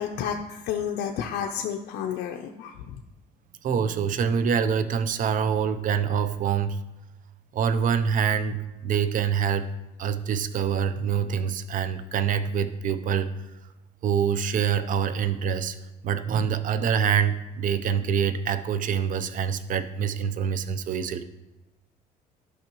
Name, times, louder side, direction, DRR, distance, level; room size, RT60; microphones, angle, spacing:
voice 1, 0.0-3.0, left 8 dB, 80° left, 2 dB, 0.6 m, -31 dB
voice 2, 3.6-6.8 7.5-9.7 10.0-13.3 14.0-15.8 16.0-21.2, right 7 dB, 50° right, 12 dB, 0.6 m, -25 dB
11.5 x 5.6 x 3.0 m, 1.0 s
cardioid pair, 110°, 17 cm